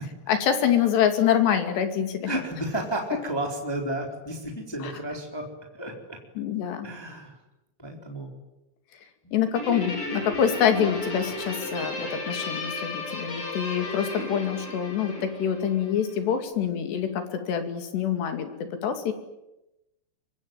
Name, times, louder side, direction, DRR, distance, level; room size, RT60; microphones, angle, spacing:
voice 1, 0.3-2.3 4.8-4.9 6.4-6.9 9.3-19.1, left 9 dB, 75° left, 7 dB, 4.5 m, -26 dB
voice 2, 2.2-5.5 5.7-6.2 6.8-7.3 7.8-8.3 9.2-9.3 13.1-13.2, right 1 dB, 5° left, 2 dB, 3.2 m, -32 dB
Guitar, 9.6-16.2, left 1 dB, 35° left, 6.7 m, -34 dB
25.0 x 24.0 x 9.1 m, 0.93 s
omnidirectional pair, 5.0 m